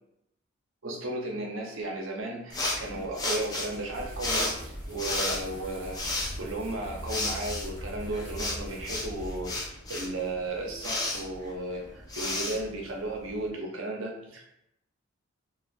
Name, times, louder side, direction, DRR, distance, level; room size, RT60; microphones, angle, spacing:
voice 1, 0.8-4.6 4.9-14.5, right 2 dB, 65° right, 0 dB, 0.7 m, -35 dB
sound 1, 2.5-13.5, left 2 dB, 20° left, 0.4 m, -34 dB
sound 2, 3.9-9.5, equal, 10° right, 1.1 m, -41 dB
3.1 x 2.3 x 2.5 m, 0.81 s
head